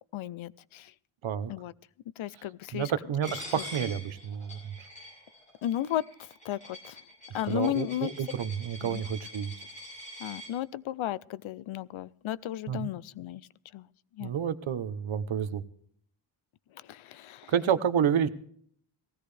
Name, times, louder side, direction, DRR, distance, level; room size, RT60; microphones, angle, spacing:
voice 1, 0.1-0.9 1.5-1.7 2.2-2.9 5.6-7.0 7.3-8.1 8.8-9.0 10.2-13.4 13.7-13.9 14.2-14.3 16.9-17.5, left 13 dB, 85° left, 20 dB, 0.6 m, -34 dB
voice 2, 2.7-4.9 7.5-9.5 12.7-12.9 14.2-15.6 17.5-18.3, right 8 dB, 80° right, 12 dB, 1.0 m, -29 dB
Coin (dropping), 3.2-10.5, equal, 15° left, 6.5 m, -45 dB
19.0 x 16.0 x 3.3 m, 0.64 s
wide cardioid pair, 170°, 47 cm